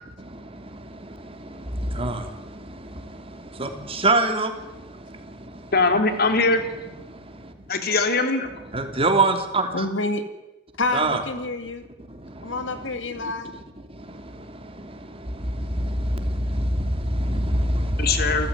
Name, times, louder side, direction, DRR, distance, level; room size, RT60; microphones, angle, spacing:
voice 1, 0.2-5.7 7.1-7.7 8.7-9.9 10.9-11.2 12.1-12.9 13.1-13.3 13.9-18.5, right 2 dB, 30° right, 3.1 m, -27 dB
voice 2, 5.7-6.6 7.7-8.5 18.0-18.5, left 3 dB, 55° left, 3.1 m, -21 dB
voice 3, 9.7-10.3 10.8-11.8 12.4-13.5, left 2 dB, 75° left, 2.5 m, -28 dB
28.5 x 14.0 x 9.6 m
head